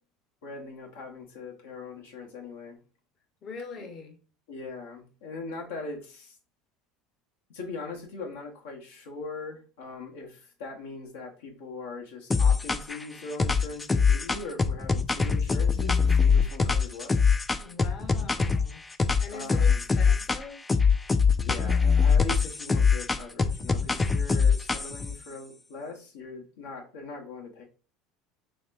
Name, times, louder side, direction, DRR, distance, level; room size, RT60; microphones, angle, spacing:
voice 1, 0.4-2.8 3.8-3.9 4.5-6.4 7.5-17.2 19.3-19.8 21.5-27.6, left 3 dB, 80° left, 1.0 m, -40 dB
voice 2, 3.4-4.2 17.6-18.8 19.2-20.8, left 4 dB, 45° left, 0.9 m, -42 dB
sound 1, 12.3-13.0 13.4-18.7 19.0-20.4 20.7-25.1, left 5 dB, 20° left, 0.3 m, -23 dB
4.0 x 3.0 x 2.5 m
hypercardioid pair, 85°, 0 cm